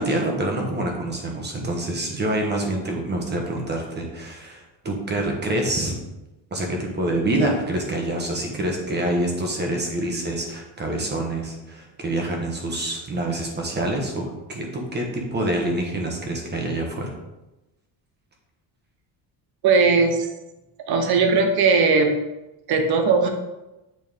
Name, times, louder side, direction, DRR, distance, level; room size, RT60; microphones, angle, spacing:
voice 1, 0.0-5.9 6.5-17.1, right 1 dB, 20° right, 1 dB, 1.3 m, -26 dB
voice 2, 19.6-20.3 20.9-22.1 22.7-23.3, right 4 dB, 55° right, 5 dB, 1.1 m, -18 dB
8.9 x 4.3 x 3.7 m, 0.99 s
cardioid pair, 160°, 45 cm